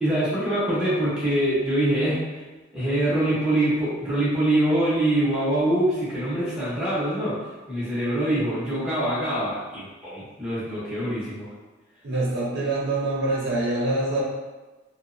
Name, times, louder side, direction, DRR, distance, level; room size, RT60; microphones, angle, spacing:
voice 1, 0.0-2.4 2.7-7.4 7.7-11.5, right 1 dB, 5° right, -10 dB, 0.8 m, -24 dB
voice 2, 12.0-14.2, right 2 dB, 55° right, -6 dB, 0.6 m, -25 dB
2.8 x 2.0 x 2.5 m, 1.2 s
head